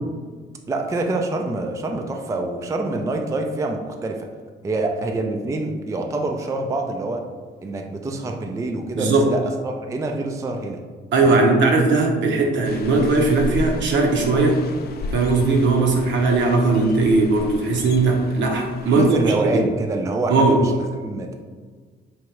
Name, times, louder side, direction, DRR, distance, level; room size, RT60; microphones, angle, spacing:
voice 1, 0.7-4.3 4.6-7.2 7.6-10.8 11.3-11.5 18.8-20.7 21.0-21.3, right 2 dB, 15° right, 2 dB, 0.3 m, -26 dB
voice 2, 9.0-9.3 11.1-14.6 15.1-19.6 20.3-20.6, right 3 dB, 70° right, 1 dB, 0.7 m, -18 dB
sound 1, 12.6-19.2, left 2 dB, 55° left, 0.4 m, -34 dB
3.4 x 2.9 x 3.1 m, 1.5 s
cardioid pair, 90°, 20 cm